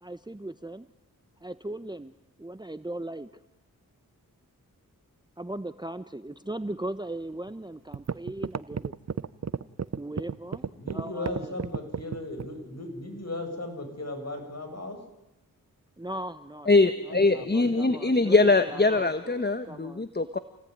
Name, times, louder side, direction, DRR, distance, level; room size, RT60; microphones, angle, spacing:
voice 1, 0.0-0.9 1.4-2.1 2.4-3.3 5.4-8.9 9.9-11.6 16.0-16.7 17.0-20.1, right 1 dB, 10° right, 12 dB, 1.1 m, -38 dB
sound 1, 7.5-7.6 7.9-12.6, right 6 dB, 45° right, 0.9 m, -32 dB
voice 2, 10.6-15.0 17.1-18.2, left 2 dB, 45° left, 5 dB, 7.7 m, -37 dB
voice 3, 16.7-20.4, left 3 dB, 30° left, 10 dB, 1.4 m, -22 dB
28.5 x 18.0 x 9.7 m, 0.93 s
cardioid pair, 50°, 36 cm